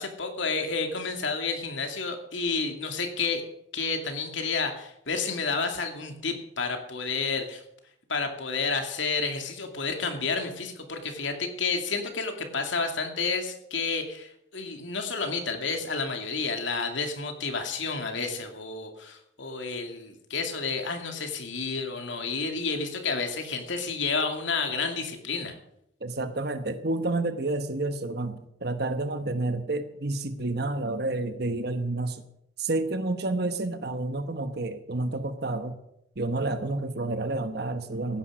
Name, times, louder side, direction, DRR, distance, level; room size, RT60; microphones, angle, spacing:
voice 1, 0.0-3.4 3.7-7.6 8.1-25.6, left 4 dB, 75° left, 5 dB, 2.4 m, -30 dB
voice 2, 26.0-32.2 32.6-35.8 36.2-38.2, right 2 dB, 55° right, 9 dB, 1.1 m, -29 dB
16.0 x 10.0 x 6.3 m, 0.78 s
head